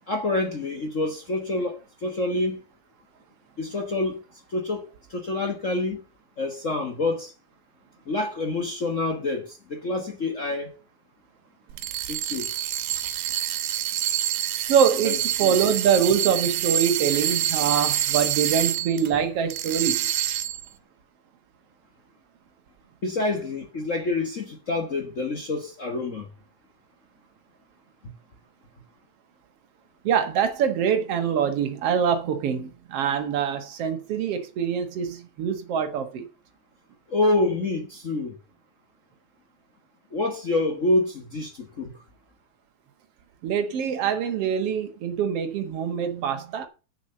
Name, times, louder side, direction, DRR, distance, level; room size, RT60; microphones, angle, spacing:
voice 1, 0.1-2.6 3.6-4.2 4.5-6.0 6.4-7.3 8.1-10.7 12.1-12.5 15.0-15.6 23.0-26.3 37.1-38.3 40.1-42.0, left 2 dB, 75° left, 0.7 m, -27 dB
sound 1, 11.7-19.1 19.5-20.7, right 12 dB, 85° right, 2.6 m, -26 dB
voice 2, 14.7-20.1 30.0-36.2 43.4-46.7, right 7 dB, 55° right, 2.1 m, -24 dB
7.9 x 7.2 x 6.6 m
omnidirectional pair, 3.6 m